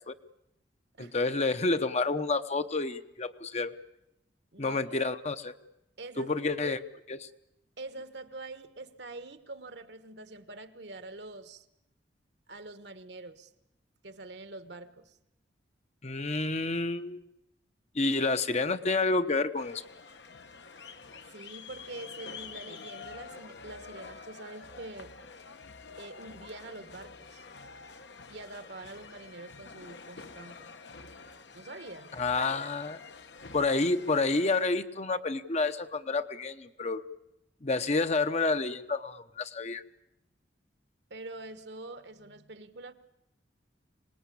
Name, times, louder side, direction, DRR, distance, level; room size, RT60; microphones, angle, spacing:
voice 1, 1.0-3.7 4.6-5.5 6.2-7.3 16.0-17.3 17.9-19.8 32.2-33.0 33.5-37.0 37.6-39.8, left 3 dB, 35° left, 10 dB, 0.9 m, -29 dB
voice 2, 4.5-5.0 6.0-6.3 7.8-11.7 12.5-13.5 14.0-15.2 21.3-25.1 26.0-27.4 28.3-30.7 31.5-32.1 41.1-42.9, right 2 dB, 65° right, 11 dB, 1.4 m, -45 dB
sound 1, 19.6-34.6, left 5 dB, 70° left, 1.2 m, -48 dB
25.5 x 19.5 x 8.5 m, 0.86 s
head